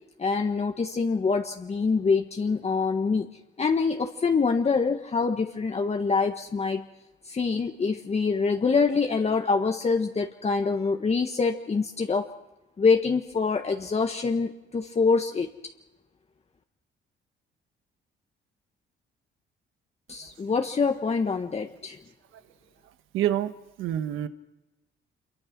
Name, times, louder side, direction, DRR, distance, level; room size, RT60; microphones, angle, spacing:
voice 1, 0.2-3.3 3.6-6.8 7.2-12.3 12.8-15.5 20.1-22.0, left 4 dB, 30° left, 4 dB, 1.4 m, -25 dB
voice 2, 23.1-23.5 23.8-24.3, right 11 dB, 90° right, 10 dB, 1.4 m, -26 dB
26.0 x 23.0 x 6.1 m, 0.98 s
cardioid pair, 90°, 20 cm